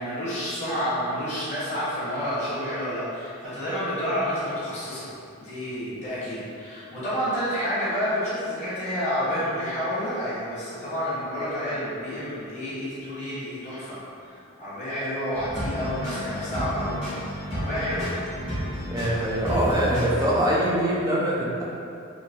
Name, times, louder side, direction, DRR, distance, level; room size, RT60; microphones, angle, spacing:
voice 1, 0.0-5.1 5.4-14.0 14.2-17.0 17.3-18.1, equal, 35° left, -11 dB, 1.1 m, -29 dB
sound 1, 15.3-20.3, equal, 60° left, 1.2 m, -32 dB
voice 2, 18.9-21.6, right 1 dB, 15° right, -5 dB, 0.4 m, -23 dB
4.0 x 2.1 x 2.5 m, 2.6 s
head